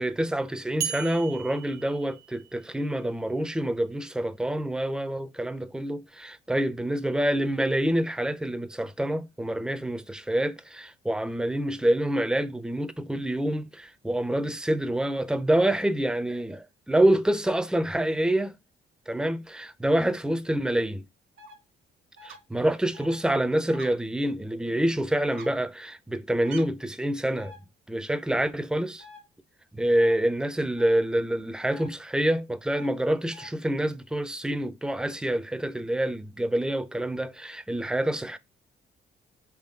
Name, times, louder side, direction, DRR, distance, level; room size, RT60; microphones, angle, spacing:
voice 1, 0.0-18.5 19.1-21.0 22.2-27.5 27.9-29.0 29.7-38.4, right 1 dB, 5° right, 0.4 m, -27 dB
sound 1, 0.8-2.9, right 8 dB, 55° right, 0.5 m, -36 dB
sound 2, 21.4-21.5 22.2-22.4 22.9-23.1 23.7-23.9 25.3-25.5 26.4-26.6 27.4-27.6 29.0-29.2 29.9-30.1 30.8-31.0 31.6-31.9 32.7-32.9 33.3-33.5, right 1 dB, 90° right, 1.0 m, -45 dB
3.6 x 3.5 x 2.4 m
cardioid pair, 90°, 20 cm